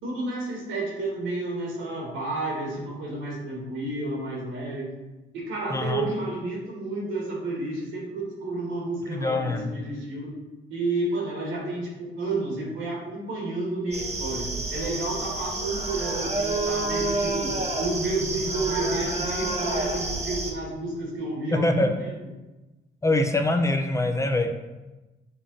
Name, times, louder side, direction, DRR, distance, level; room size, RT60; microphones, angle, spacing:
voice 1, 0.0-4.9 5.3-10.3 10.7-22.1, right 2 dB, 85° right, -2 dB, 2.4 m, -31 dB
voice 2, 5.7-6.0 9.1-9.7 21.6-21.9 23.0-24.5, left 2 dB, 15° left, 4 dB, 0.9 m, -24 dB
sound 1, 13.9-20.5, right 2 dB, 35° right, 1.4 m, -29 dB
7.0 x 3.6 x 5.8 m, 1.1 s
cardioid pair, 90°, 20 cm